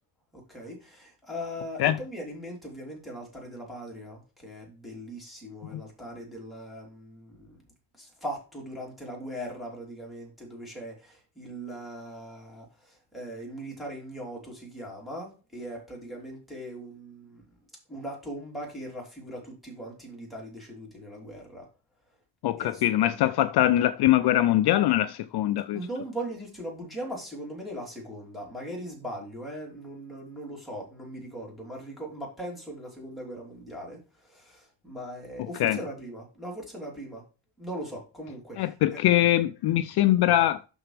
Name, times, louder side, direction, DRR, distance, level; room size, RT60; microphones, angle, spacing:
voice 1, 0.3-7.6 8.0-17.4 17.9-21.7 22.6-23.2 25.7-37.2 37.6-39.0, equal, ahead, 3.5 m, -40 dB
voice 2, 22.4-25.8 35.6-35.8 38.6-40.6, left 13 dB, 55° left, 0.5 m, -22 dB
12.0 x 4.4 x 3.4 m
cardioid pair, 170°, 46 cm